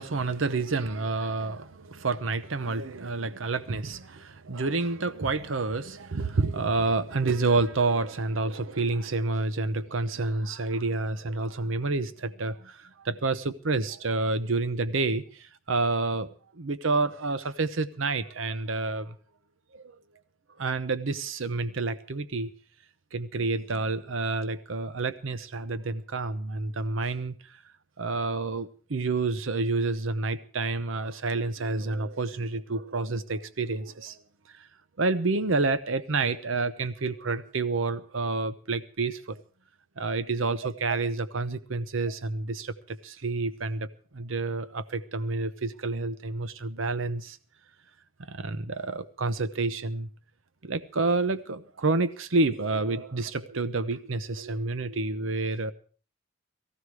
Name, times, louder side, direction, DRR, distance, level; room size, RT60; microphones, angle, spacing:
voice 1, 0.0-16.3 16.5-19.2 19.7-19.8 20.6-22.5 23.1-27.6 28.0-34.2 34.5-34.7 35.0-39.4 40.0-43.9 44.1-47.4 48.3-50.1 50.6-55.7, right 3 dB, 85° right, 0.8 m, -29 dB
19.0 x 15.0 x 4.8 m
head